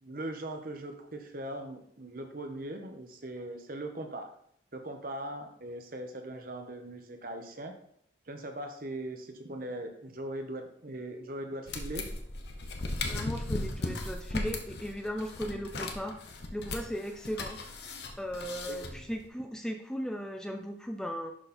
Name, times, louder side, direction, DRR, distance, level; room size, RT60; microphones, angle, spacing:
voice 1, 0.0-4.3 4.7-7.7 8.3-12.1 18.7-19.1, right 1 dB, 50° right, 5 dB, 1.0 m, -40 dB
sound 1, 11.7-19.3, left 2 dB, 60° left, 1.1 m, -37 dB
voice 2, 13.1-16.2 16.5-17.6 18.2-21.3, equal, 5° left, 4 dB, 0.5 m, -37 dB
11.0 x 4.1 x 4.3 m, 0.68 s
head